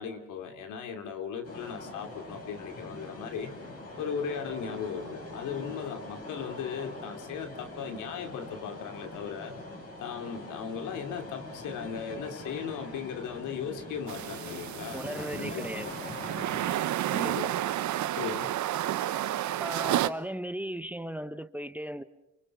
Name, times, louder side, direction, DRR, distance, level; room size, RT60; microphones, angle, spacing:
voice 1, 0.0-3.6 4.0-9.5 10.0-16.0 17.2-17.5 18.2-18.5, left 7 dB, 85° left, 6 dB, 2.9 m, -37 dB
sound 1, 1.4-16.8, left 2 dB, 50° left, 7.7 m, -43 dB
sound 2, 14.1-20.1, right 13 dB, 70° right, 0.9 m, -31 dB
voice 2, 14.9-15.9 17.1-17.5 19.6-22.0, equal, 5° right, 12 dB, 1.1 m, -36 dB
27.5 x 25.0 x 6.1 m, 0.89 s
cardioid pair, 90°, 30 cm